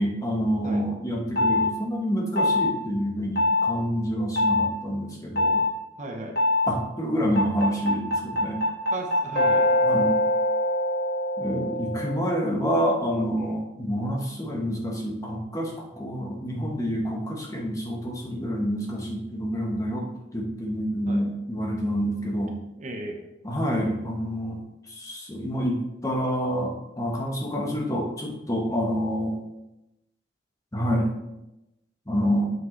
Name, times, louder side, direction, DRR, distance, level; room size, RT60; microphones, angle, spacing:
voice 1, 0.0-5.6 6.7-8.6 9.8-10.1 11.4-22.6 23.4-24.6 24.9-29.4 30.7-31.1 32.1-32.5, equal, 15° left, -1 dB, 1.1 m, -27 dB
sound 1, 1.4-1.7 2.4-2.7 3.4-3.7 4.4-4.7 5.4-5.7 6.4-6.7 7.4-12.4, left 1 dB, 50° left, 1.5 m, -23 dB
voice 2, 6.0-6.4 8.9-9.9 13.1-13.6 21.1-21.2 22.8-23.2 28.7-28.8, right 1 dB, 40° right, 2 dB, 0.8 m, -36 dB
7.3 x 6.1 x 3.2 m, 0.93 s
head